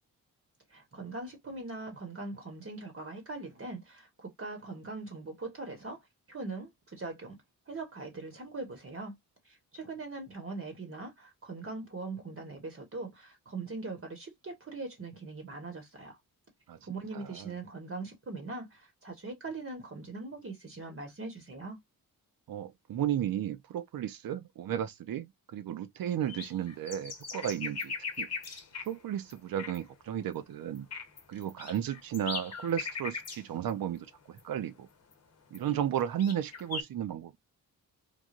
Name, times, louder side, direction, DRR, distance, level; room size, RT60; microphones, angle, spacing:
voice 1, 0.7-6.0 6.3-7.4 7.7-9.1 9.4-16.2 16.8-21.8, right 3 dB, 40° right, 1.2 m, -41 dB
voice 2, 17.1-17.5 22.5-28.3 28.9-30.9 31.3-34.9 35.5-37.3, right 10 dB, 70° right, 0.6 m, -34 dB
sound 1, 26.3-28.9 29.3-29.4 29.6-29.8 30.3-30.4 30.7-33.4 33.7-33.8 34.4-34.5 35.1-35.2 35.5-35.6 36.0-36.8, left 4 dB, 45° left, 0.9 m, -39 dB
3.2 x 2.2 x 2.4 m
cardioid pair, 75°, 36 cm